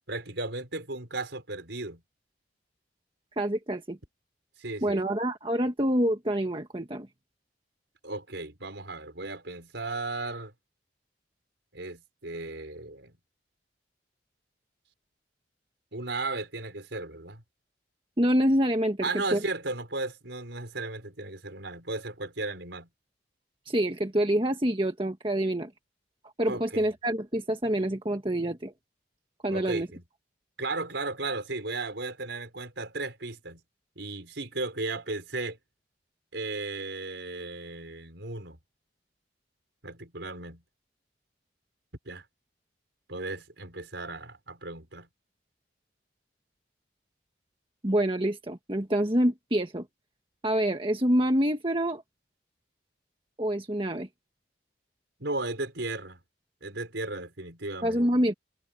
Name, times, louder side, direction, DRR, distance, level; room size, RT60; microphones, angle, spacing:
voice 1, 0.1-2.0 4.6-5.1 8.0-10.5 11.7-13.1 15.9-17.4 19.0-22.9 26.5-26.9 29.5-30.0 30.6-33.6 34.0-35.6 36.3-38.6 39.8-40.6 42.1-42.2 43.1-45.1 55.2-56.2 56.6-58.1, right 2 dB, 75° right, 4.6 m, -35 dB
voice 2, 3.4-4.0 4.8-7.1 18.2-19.4 23.6-25.7 26.4-28.7 29.4-29.9 47.8-49.9 50.4-52.0 53.4-54.1 57.8-58.3, right 1 dB, 30° right, 1.6 m, -26 dB
head